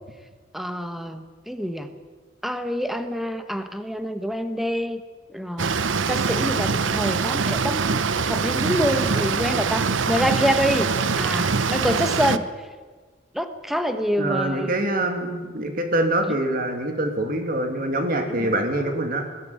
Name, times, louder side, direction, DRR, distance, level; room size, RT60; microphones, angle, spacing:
voice 1, 0.5-1.9 2.4-5.0 5.3-5.8 6.1-8.0 8.3-12.5 13.3-14.8 18.4-18.5, equal, ahead, 8 dB, 1.2 m, -26 dB
sound 1, 5.6-12.4, right 5 dB, 80° right, 0.8 m, -23 dB
voice 2, 14.2-19.3, right 1 dB, 50° right, 5 dB, 2.7 m, -25 dB
21.0 x 14.0 x 9.5 m, 1.4 s
head